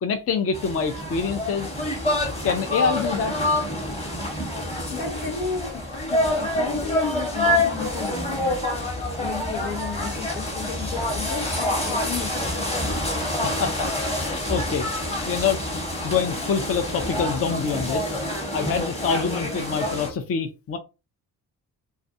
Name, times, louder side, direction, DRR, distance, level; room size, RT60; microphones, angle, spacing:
voice 1, 0.0-1.7 2.4-3.4 13.4-13.9 14.2-14.9 15.3-18.2 18.5-20.8, left 6 dB, 35° left, 0.5 m, -26 dB
sound 1, 0.5-20.1, left 1 dB, 15° left, 1.1 m, -27 dB
voice 2, 4.9-8.7 9.2-12.7, left 6 dB, 65° left, 0.8 m, -33 dB
2.4 x 2.2 x 2.7 m
hypercardioid pair, 55°, 43 cm